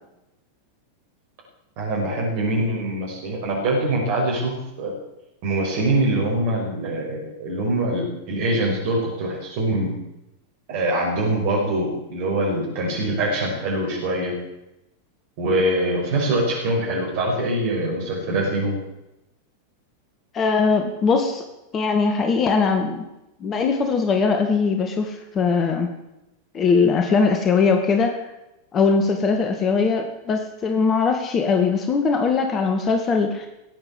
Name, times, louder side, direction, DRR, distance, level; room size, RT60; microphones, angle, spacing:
voice 1, 1.8-4.5 4.8-4.9 5.4-9.9 10.7-14.3 15.4-18.8, right 1 dB, 45° right, -3 dB, 5.8 m, -23 dB
voice 2, 20.3-21.4 21.7-23.1 23.4-25.9 26.5-28.2 28.7-33.5, left 4 dB, 25° left, 5 dB, 2.2 m, -20 dB
18.0 x 8.0 x 8.1 m, 0.91 s
figure-of-eight pair, 90°, 0 cm